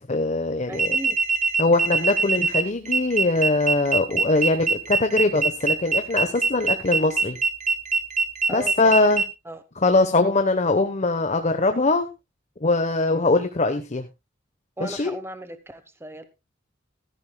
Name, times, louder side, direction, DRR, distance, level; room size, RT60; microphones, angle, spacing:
voice 1, 0.1-1.0 1.6-7.4 8.5-9.2 9.8-12.1 12.6-14.0 14.8-15.2, left 2 dB, 40° left, 7 dB, 1.0 m, -22 dB
voice 2, 0.7-1.2 8.5-9.0 9.4-9.6 14.8-16.2, right 1 dB, 15° right, 11 dB, 1.1 m, -36 dB
sound 1, 0.7-9.2, right 4 dB, 40° right, 1.4 m, -23 dB
15.5 x 13.5 x 2.2 m, 0.25 s
head